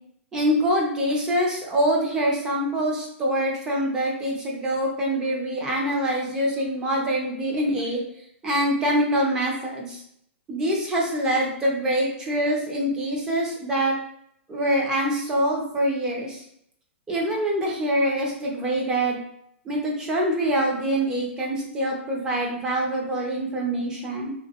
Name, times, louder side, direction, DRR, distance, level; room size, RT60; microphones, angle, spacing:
voice 1, 0.3-8.0 8.4-10.0 10.5-14.0 14.5-16.4 17.1-19.2 19.7-24.3, right 1 dB, 10° right, -2 dB, 0.4 m, -25 dB
3.4 x 2.1 x 2.7 m, 0.71 s
hypercardioid pair, 165°, 7 cm